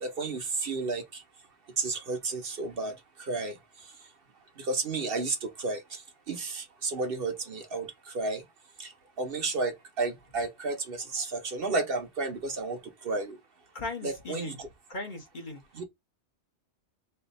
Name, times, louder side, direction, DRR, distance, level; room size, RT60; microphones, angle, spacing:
voice 1, 0.0-1.2 1.8-2.9 3.2-3.5 4.6-6.0 6.3-7.9 8.1-8.4 8.8-8.9 9.2-12.8 13.0-13.4 14.0-14.7 15.7-15.8, right 3 dB, 55° right, 1.0 m, -32 dB
voice 2, 13.7-14.6 14.9-15.6, left 2 dB, 45° left, 1.2 m, -38 dB
3.4 x 2.5 x 3.9 m
omnidirectional pair, 1.2 m